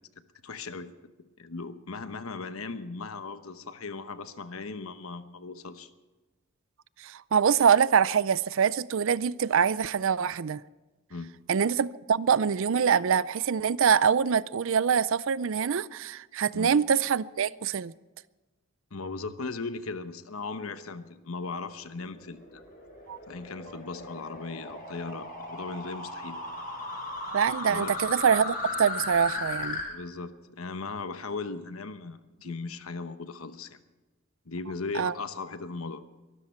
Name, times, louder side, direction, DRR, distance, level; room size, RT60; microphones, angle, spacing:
voice 1, 0.4-0.9 1.4-5.9 11.1-11.3 16.5-16.7 18.9-22.6 23.3-26.4 27.7-27.9 29.9-33.8 34.5-36.0, left 4 dB, 80° left, 1.0 m, -37 dB
voice 2, 7.0-10.6 11.5-17.9 23.1-23.2 27.3-29.8 34.9-35.1, right 7 dB, 65° right, 0.5 m, -24 dB
sound 1, 21.8-29.8, left 2 dB, 40° left, 5.5 m, -37 dB
23.5 x 13.0 x 4.4 m
head